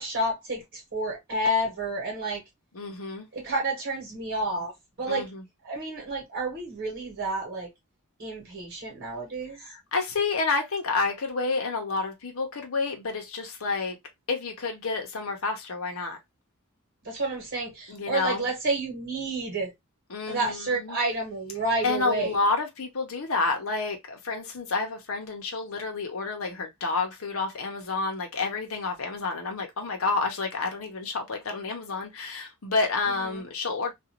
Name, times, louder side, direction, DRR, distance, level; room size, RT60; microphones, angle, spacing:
voice 1, 0.0-2.4 3.3-4.7 5.0-5.3 5.6-7.7 8.2-9.6 17.0-19.7 20.3-22.3 33.1-33.4, right 2 dB, 55° right, 1.2 m, -30 dB
voice 2, 2.7-3.3 5.1-5.4 9.7-14.0 14.3-16.2 17.9-18.4 20.1-21.0 21.8-33.9, left 3 dB, 75° left, 0.8 m, -29 dB
2.5 x 2.4 x 2.9 m
head